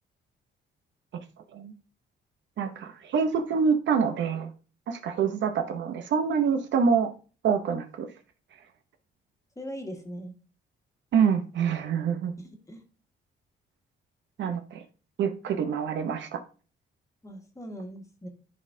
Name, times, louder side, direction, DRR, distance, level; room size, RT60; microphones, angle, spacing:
voice 1, 2.6-4.5 4.9-7.1 7.4-8.1 11.1-12.3 14.4-14.8 15.2-16.4, right 6 dB, 65° right, 7 dB, 0.8 m, -26 dB
voice 2, 9.6-10.3 12.4-12.8 17.2-18.3, equal, 15° left, 4 dB, 1.6 m, -40 dB
11.0 x 4.2 x 2.7 m, 0.37 s
cardioid pair, 90°, 20 cm